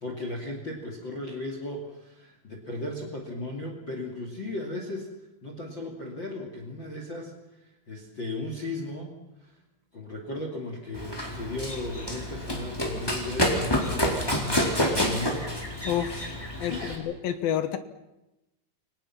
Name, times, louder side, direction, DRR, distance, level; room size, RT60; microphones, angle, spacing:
voice 1, 0.0-5.1 5.4-7.6 7.9-9.6 9.9-15.5 16.7-17.0, left 2 dB, 30° left, 3 dB, 2.7 m, -36 dB
Run, 10.9-17.0, equal, 5° left, 3.7 m, -28 dB
voice 2, 15.8-16.3 16.6-17.8, left 10 dB, 70° left, 10 dB, 2.7 m, -29 dB
29.5 x 24.0 x 5.9 m, 0.95 s
omnidirectional pair, 4.9 m